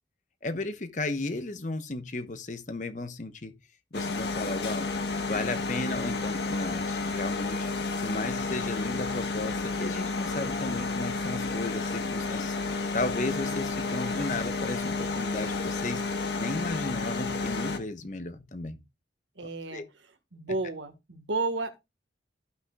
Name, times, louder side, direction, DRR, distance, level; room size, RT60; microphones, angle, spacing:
voice 1, 0.4-3.5 3.9-4.9 5.3-7.6 8.0-18.8 19.7-19.8 20.5-20.6, left 2 dB, 40° left, 0.9 m, -34 dB
sound 1, 3.9-17.8, left 3 dB, 70° left, 1.3 m, -31 dB
voice 2, 19.4-19.8 20.3-21.9, right 3 dB, 85° right, 1.5 m, -32 dB
14.5 x 6.1 x 2.3 m
head